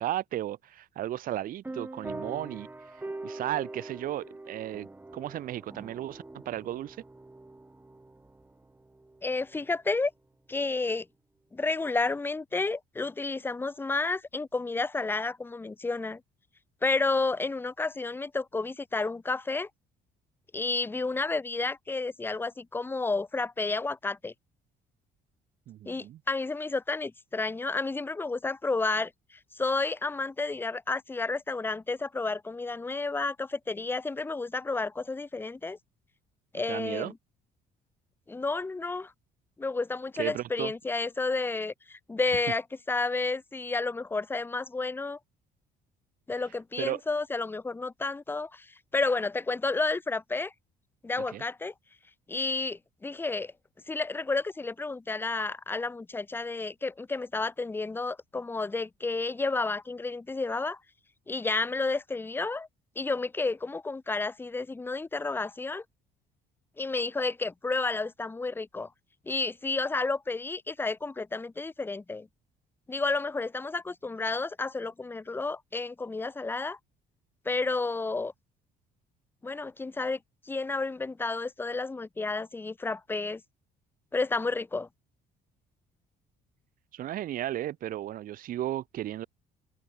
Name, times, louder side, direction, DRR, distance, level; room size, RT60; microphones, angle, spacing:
voice 1, 0.0-2.7 3.2-4.9 5.1-7.0 25.7-26.2 36.7-37.1 40.2-40.7 46.8-47.0 51.3-51.4 86.9-89.3, right 13 dB, 55° right, 0.7 m, -34 dB
sound 1, 1.6-9.7, right 2 dB, 10° right, 1.7 m, -43 dB
voice 2, 9.2-10.1 10.5-11.1 11.5-16.2 16.8-19.7 20.5-24.3 25.8-29.1 29.6-35.8 36.5-37.1 38.3-39.1 39.6-45.2 46.3-48.7 48.9-50.5 51.0-51.7 52.3-53.5 53.9-60.8 61.3-62.7 63.0-65.8 66.8-68.9 69.3-72.3 72.9-76.8 77.5-78.3 79.4-80.2 80.5-83.4 84.1-84.9, left 3 dB, 10° left, 0.6 m, -31 dB
cardioid pair, 110°, 17 cm